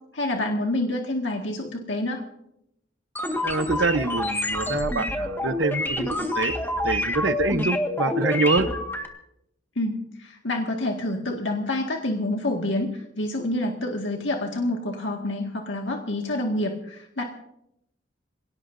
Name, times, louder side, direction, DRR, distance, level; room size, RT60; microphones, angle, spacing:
voice 1, 0.1-2.2 9.8-17.2, left 1 dB, 80° left, 1 dB, 1.9 m, -27 dB
sound 1, 3.2-9.1, left 1 dB, 10° left, 1.8 m, -27 dB
voice 2, 3.4-6.5 6.8-8.7, right 3 dB, 70° right, 10 dB, 0.9 m, -25 dB
27.0 x 18.0 x 2.7 m, 0.79 s
head